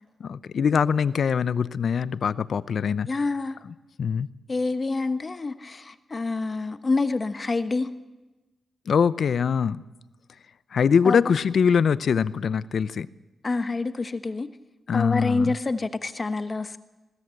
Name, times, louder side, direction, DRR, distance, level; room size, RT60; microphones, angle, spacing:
voice 1, 0.2-3.1 4.0-4.3 8.9-9.8 10.7-13.1 14.9-15.5, left 6 dB, 70° left, 17 dB, 0.6 m, -23 dB
voice 2, 3.1-3.6 4.5-7.9 11.0-11.3 13.4-14.5 14.9-16.8, left 3 dB, 40° left, 10 dB, 1.3 m, -27 dB
21.5 x 17.0 x 7.8 m, 1.1 s
cardioid pair, 65°, 0 cm